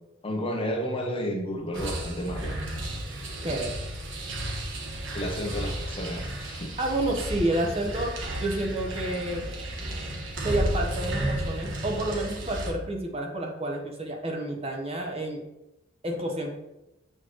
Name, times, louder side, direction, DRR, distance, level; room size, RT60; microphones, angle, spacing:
voice 1, 0.2-2.6 5.1-6.7 9.7-9.8, equal, 30° left, 2 dB, 0.8 m, -32 dB
sound 1, 1.7-12.7, right 1 dB, 80° right, 1.3 m, -33 dB
voice 2, 3.4-3.7 6.8-8.1 8.4-9.4 10.4-15.4 16.0-16.5, right 1 dB, 30° right, 2 dB, 0.9 m, -29 dB
7.5 x 4.4 x 3.1 m, 0.94 s
head